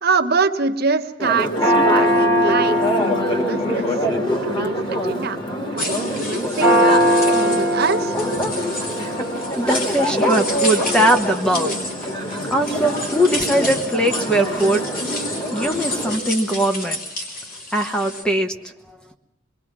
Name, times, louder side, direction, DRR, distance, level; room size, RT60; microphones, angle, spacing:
voice 1, 0.0-4.1 4.4-8.1, right 4 dB, 50° right, 4 dB, 1.3 m, -25 dB
Church bell, 1.2-16.2, equal, 25° left, 3.2 m, -22 dB
sound 1, 5.8-18.2, left 2 dB, 45° left, 3.7 m, -31 dB
voice 2, 9.2-12.2 12.5-14.8 15.5-17.0 17.7-18.5 18.9-19.0, right 1 dB, 5° left, 5 dB, 1.2 m, -21 dB
26.0 x 21.5 x 6.2 m, 0.88 s
head